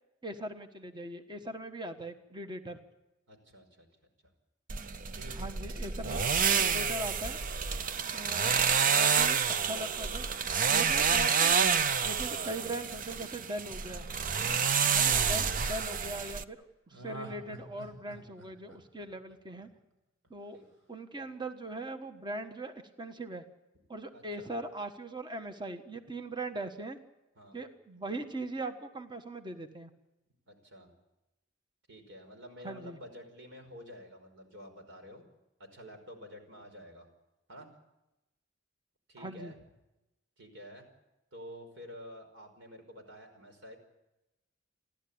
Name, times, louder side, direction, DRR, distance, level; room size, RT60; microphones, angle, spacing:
voice 1, 0.2-2.8 5.4-6.2 6.6-7.4 8.1-10.3 10.7-11.6 12.0-14.0 14.9-19.7 20.3-20.6 20.9-23.4 23.9-27.0 27.5-29.9 32.6-33.0 39.2-39.5, right 1 dB, 25° right, 7 dB, 1.3 m, -40 dB
voice 2, 3.3-3.9 5.2-5.5 14.4-14.6 20.5-20.7 24.1-24.5 27.4-27.6 30.5-30.9 31.9-35.3 35.6-37.1 37.5-37.7 39.1-39.6 40.4-40.9 41.3-43.8, equal, 70° right, 6 dB, 5.2 m, -49 dB
sound 1, 4.7-16.4, right 6 dB, 45° right, 0.7 m, -29 dB
Laughter, 12.4-15.3 16.9-19.9 20.2-20.3, right 1 dB, 85° right, 5.7 m, -50 dB
30.0 x 12.0 x 8.7 m, 0.97 s
head